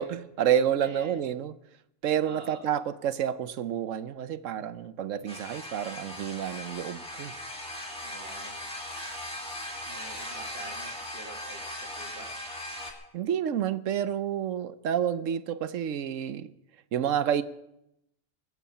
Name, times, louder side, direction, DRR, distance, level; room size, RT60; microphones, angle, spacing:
voice 1, 0.0-1.5 2.0-7.3 13.1-16.5 16.9-17.4, right 9 dB, 90° right, 1.1 m, -29 dB
voice 2, 0.8-1.2 2.2-2.6 8.0-8.6 9.9-12.3, right 3 dB, 50° right, 2.3 m, -46 dB
sound 1, 5.3-12.9, left 1 dB, 5° left, 2.2 m, -39 dB
20.0 x 8.6 x 7.0 m
omnidirectional pair, 1.3 m